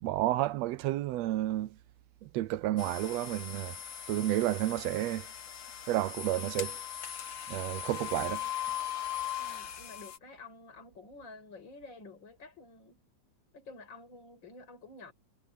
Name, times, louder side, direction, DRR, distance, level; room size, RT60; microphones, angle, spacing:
voice 1, 0.0-1.7 2.2-3.7 4.1-5.3 5.9-6.8 7.5-8.5, right 15 dB, 75° right, 1.6 m, -31 dB
sound 1, 2.8-10.2, left 10 dB, 55° left, 2.0 m, -39 dB
voice 2, 9.4-13.0 13.5-15.1, left 3 dB, 35° left, 6.1 m, -50 dB
omnidirectional pair, 3.4 m